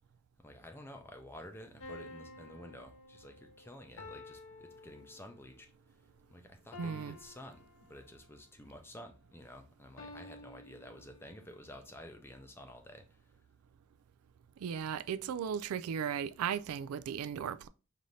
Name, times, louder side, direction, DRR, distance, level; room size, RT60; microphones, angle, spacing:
voice 1, 0.4-5.7 6.3-13.2, left 1 dB, 10° left, 0.6 m, -51 dB
sound 1, 1.8-5.5 6.7-8.3 10.0-11.5, left 2 dB, 60° left, 0.7 m, -52 dB
voice 2, 6.8-7.2 14.6-17.7, right 8 dB, 80° right, 0.3 m, -36 dB
5.2 x 2.7 x 3.1 m
head